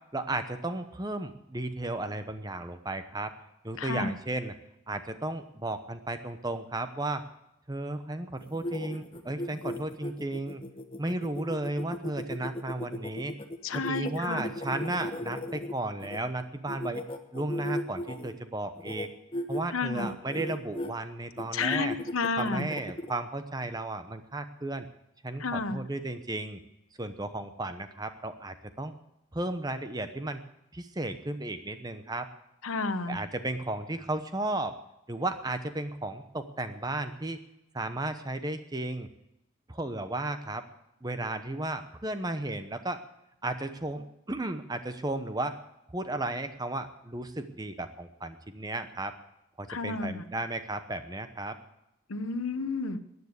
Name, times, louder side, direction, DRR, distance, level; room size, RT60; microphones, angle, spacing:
voice 1, 0.1-3.3 3.6-4.5 4.9-7.3 7.7-10.6 11.0-13.3 13.7-17.0 17.3-19.1 19.5-21.9 22.4-24.9 25.2-26.6 27.0-28.9 29.3-30.4 30.7-32.3 33.1-34.8 35.1-37.4 37.7-39.1 39.7-40.6 41.0-43.0 43.4-45.6 45.9-49.1 49.6-51.6, right 2 dB, 20° right, 9 dB, 0.9 m, -34 dB
voice 2, 3.8-4.1 13.6-14.4 19.7-20.1 21.5-22.7 25.4-25.8 32.6-33.2 49.7-50.2 52.1-53.0, left 3 dB, 85° left, 11 dB, 1.0 m, -31 dB
sound 1, 8.4-16.2 16.7-18.3 18.8-19.1 19.3-19.6 19.9-20.9 21.4-23.1, left 1 dB, 25° left, 1.1 m, -37 dB
14.0 x 9.6 x 8.2 m, 0.86 s
head